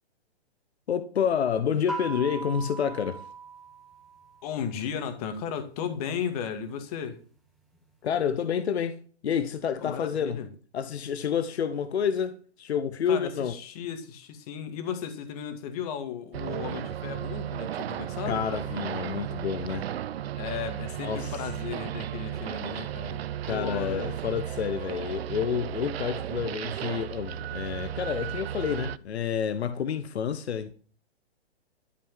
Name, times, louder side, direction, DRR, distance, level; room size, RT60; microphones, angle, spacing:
voice 1, 0.9-3.2 8.0-9.0 9.2-10.4 10.7-13.5 18.3-19.9 21.0-21.3 23.4-30.7, left 8 dB, 75° left, 1.2 m, -29 dB
sound 1, 1.9-4.6, right 3 dB, ahead, 1.7 m, -39 dB
voice 2, 4.4-7.2 9.8-10.5 13.1-18.4 20.4-24.2, left 8 dB, 35° left, 2.3 m, -35 dB
sound 2, 16.3-29.0, right 11 dB, 65° right, 0.7 m, -34 dB
13.0 x 5.4 x 7.4 m
hypercardioid pair, 155°, 33 cm